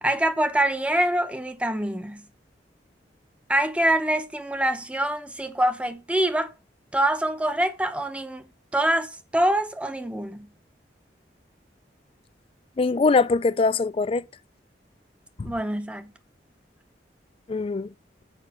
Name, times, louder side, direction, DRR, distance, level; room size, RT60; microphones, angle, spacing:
voice 1, 0.0-2.3 3.5-6.5 6.9-8.5 8.7-10.5 15.4-16.1, right 1 dB, 5° right, 0.7 m, -25 dB
voice 2, 12.8-14.2 15.4-15.5 17.5-17.9, left 4 dB, 30° left, 0.3 m, -22 dB
6.7 x 4.9 x 6.9 m
head